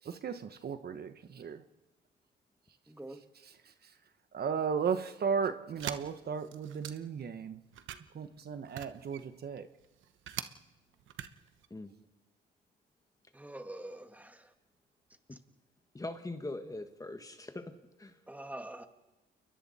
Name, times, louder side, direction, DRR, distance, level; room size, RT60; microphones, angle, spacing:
voice 1, 0.0-1.6 3.4-4.0 4.3-7.6 8.1-9.7, right 6 dB, 55° right, 9 dB, 1.2 m, -35 dB
voice 2, 2.9-3.2 13.3-14.5 15.3-15.4 18.3-18.9, right 1 dB, 10° right, 6 dB, 1.9 m, -45 dB
sound 1, 5.8-7.2 7.7-10.5 10.9-11.7, right 11 dB, 75° right, 1.0 m, -42 dB
voice 3, 15.9-18.2, left 2 dB, 15° left, 7 dB, 1.7 m, -42 dB
29.5 x 22.0 x 4.3 m, 1.0 s
cardioid pair, 90°, 20 cm